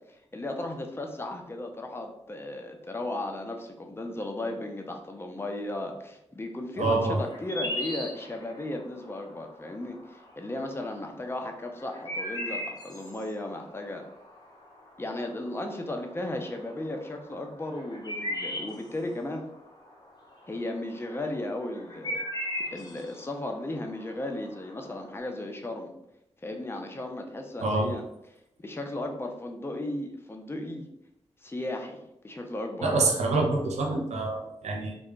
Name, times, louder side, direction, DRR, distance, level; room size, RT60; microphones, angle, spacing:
voice 1, 0.1-14.0 15.0-19.5 20.5-22.2 22.7-25.9 26.4-28.0 28.6-30.9 31.4-33.1, left 1 dB, 20° left, 3 dB, 0.6 m, -35 dB
voice 2, 6.8-7.2 27.6-27.9 32.8-35.0, right 3 dB, 80° right, 1 dB, 0.7 m, -26 dB
sound 1, 6.9-25.2, left 1 dB, 35° left, 1.1 m, -38 dB
3.6 x 2.2 x 3.7 m, 0.82 s
cardioid pair, 60°, 11 cm